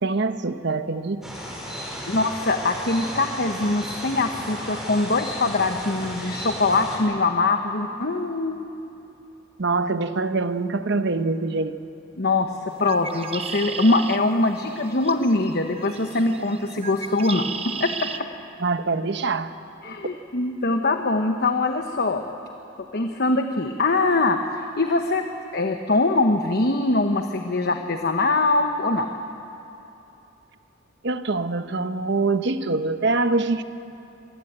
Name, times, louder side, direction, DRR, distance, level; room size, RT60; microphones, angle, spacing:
voice 1, 0.0-1.2 9.6-11.7 18.6-19.5 31.0-33.6, right 3 dB, 60° right, 10 dB, 0.9 m, -24 dB
sound 1, 1.2-7.0, equal, ahead, 5.4 m, -34 dB
voice 2, 2.1-8.7 12.2-12.5 12.8-17.5 17.8-17.9 19.8-22.2 22.9-25.2 25.5-29.1, left 2 dB, 55° left, 5 dB, 1.1 m, -22 dB
Bird, 12.7-18.2, right 6 dB, 30° right, 0.9 m, -35 dB
25.0 x 18.5 x 8.9 m, 2.9 s
head